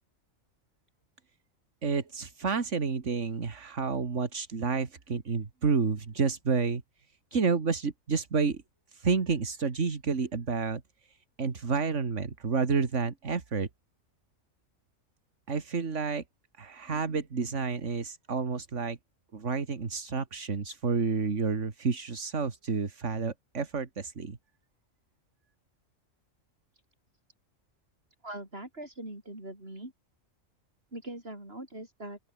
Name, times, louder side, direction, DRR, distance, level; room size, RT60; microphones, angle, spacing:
voice 1, 1.8-6.8 7.3-8.6 8.9-13.7 15.5-16.2 16.6-19.0 19.3-24.4, right 5 dB, 65° right, 2.3 m, -30 dB
voice 2, 28.2-29.9 30.9-32.2, right 1 dB, 45° right, 7.2 m, -41 dB
open air
omnidirectional pair, 1.4 m